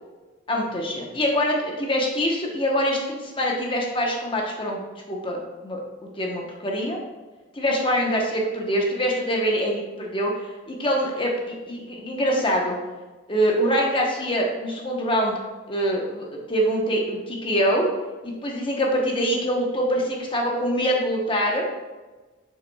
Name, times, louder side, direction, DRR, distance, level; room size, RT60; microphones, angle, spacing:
voice 1, 0.5-4.8 5.1-5.8 6.2-7.0 7.5-12.7 13.3-15.4 15.7-17.9 18.2-21.7, equal, 25° left, 0 dB, 1.0 m, -24 dB
6.6 x 6.1 x 2.3 m, 1.2 s
head